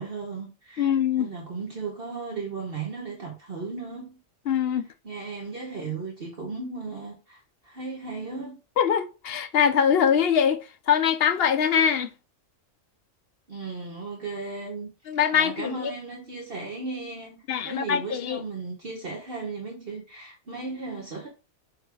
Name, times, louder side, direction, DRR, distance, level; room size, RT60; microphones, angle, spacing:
voice 1, 0.0-4.2 4.7-8.6 13.5-14.9 15.3-21.3, right 4 dB, 45° right, 1.4 m, -36 dB
voice 2, 0.8-1.3 4.5-4.9 8.8-10.6 10.9-12.1 15.1-15.9 17.5-18.4, left 8 dB, 60° left, 0.7 m, -23 dB
6.8 x 3.1 x 4.7 m
omnidirectional pair, 1.4 m